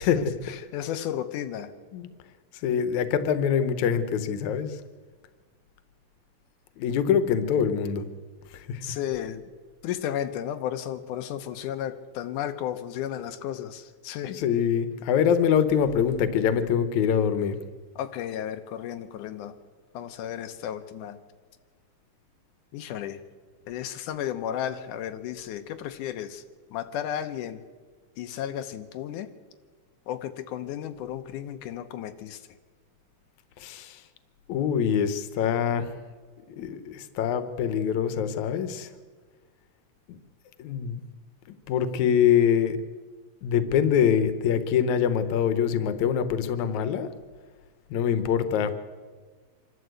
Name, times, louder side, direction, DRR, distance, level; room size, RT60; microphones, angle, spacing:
voice 1, 0.0-1.7 8.8-9.5 9.8-14.4 18.0-19.5 19.9-21.2 22.7-23.2 23.7-26.4 26.7-27.6 28.2-29.3 30.1-32.4, left 10 dB, 90° left, 8 dB, 2.4 m, -33 dB
voice 2, 2.6-4.8 6.8-8.1 8.5-8.8 13.2-13.3 14.2-17.6 33.6-34.0 34.5-35.9 36.5-38.9 40.1-40.2 40.6-41.0 41.7-42.8 43.4-47.1 47.9-48.8, left 8 dB, 75° left, 11 dB, 2.4 m, -24 dB
26.0 x 12.5 x 8.1 m, 1.5 s
omnidirectional pair, 3.5 m